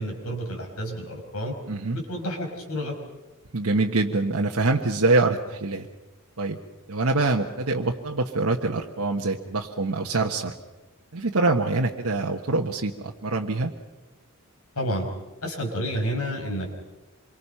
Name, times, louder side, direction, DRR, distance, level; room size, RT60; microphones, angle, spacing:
voice 1, 0.0-1.5 1.9-3.0 14.8-15.1 15.4-16.7, equal, 85° left, 2 dB, 5.4 m, -30 dB
voice 2, 1.7-2.0 3.5-5.9 6.4-6.6 6.9-10.5 11.1-13.7, right 3 dB, 75° right, 0 dB, 1.3 m, -24 dB
26.5 x 23.5 x 5.7 m, 1.1 s
head